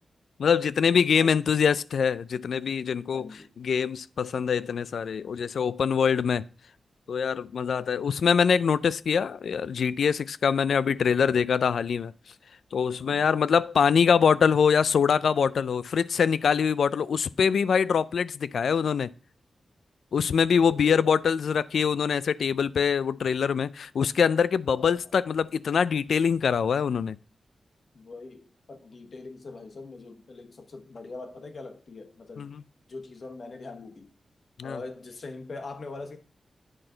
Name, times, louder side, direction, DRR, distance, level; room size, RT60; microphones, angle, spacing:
voice 1, 0.4-3.3 3.6-6.4 7.1-12.1 12.7-19.1 20.1-27.2 32.4-32.6 34.6-34.8, left 6 dB, 85° left, 0.3 m, -24 dB
voice 2, 3.1-3.5 20.5-21.1 24.7-25.0 27.9-32.5 32.9-34.1 34.6-36.2, left 3 dB, 55° left, 1.2 m, -42 dB
8.8 x 6.1 x 3.8 m
wide cardioid pair, 135°, 0 cm